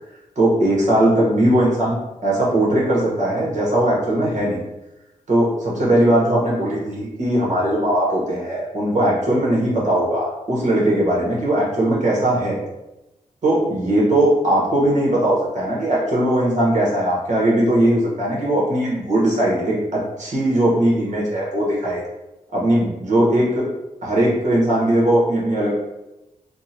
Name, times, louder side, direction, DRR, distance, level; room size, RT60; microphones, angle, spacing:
voice 1, 0.4-1.9 2.2-4.6 5.3-12.6 13.4-22.0 22.5-23.7 24.0-25.7, right 1 dB, 65° right, -5 dB, 1.2 m, -19 dB
3.6 x 2.2 x 2.8 m, 0.95 s
wide cardioid pair, 85°, 13 cm